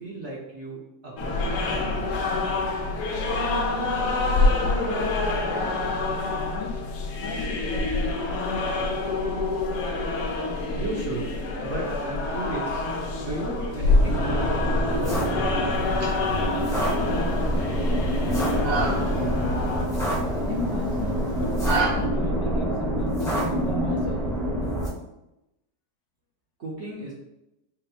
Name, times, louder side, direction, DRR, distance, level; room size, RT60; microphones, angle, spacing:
voice 1, 0.0-2.2 10.7-11.3 11.6-12.8 13.2-14.6 14.9-15.7 26.6-27.1, right 2 dB, 55° right, -4 dB, 0.9 m, -35 dB
sound 1, 1.2-19.8, left 3 dB, 90° left, 1.2 m, -27 dB
voice 2, 4.4-5.8 6.0-6.7 7.2-9.0 17.0-17.3 18.2-19.6 20.3-24.3, left 5 dB, 70° left, -1 dB, 0.6 m, -37 dB
sound 2, 13.8-24.9, equal, 5° left, 0.5 m, -26 dB
sound 3, 15.7-21.9, right 4 dB, 75° right, 1.4 m, -33 dB
4.2 x 2.0 x 4.0 m, 0.90 s
omnidirectional pair, 1.7 m